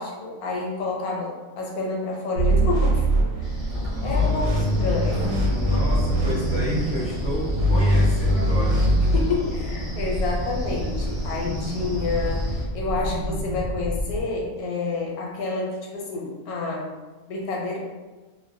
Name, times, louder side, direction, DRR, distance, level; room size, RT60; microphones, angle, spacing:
voice 1, 0.0-3.0 3.4-3.6 4.0-4.5 4.8-5.4 9.0-16.9 17.3-17.8, left 3 dB, 85° left, -2 dB, 1.1 m, -29 dB
sound 1, 2.4-3.8 4.1-6.9 7.5-9.2, equal, 70° right, 0.9 m, -22 dB
sound 2, 3.4-14.2, equal, 60° left, 0.7 m, -30 dB
Wind, 3.4-12.6, equal, 30° right, 0.8 m, -34 dB
voice 2, 3.9-4.5 5.5-9.2, equal, 5° left, -9 dB, 0.6 m, -31 dB
2.5 x 2.0 x 2.6 m, 1.3 s
omnidirectional pair, 1.5 m